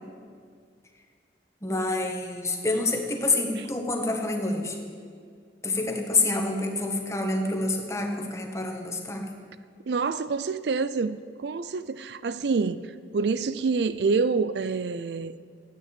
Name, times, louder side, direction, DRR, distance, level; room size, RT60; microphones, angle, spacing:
voice 1, 1.6-4.8 5.6-9.3, left 2 dB, 15° left, 1.6 m, -27 dB
voice 2, 9.9-15.3, right 4 dB, 70° right, 0.4 m, -27 dB
13.5 x 9.2 x 8.8 m
head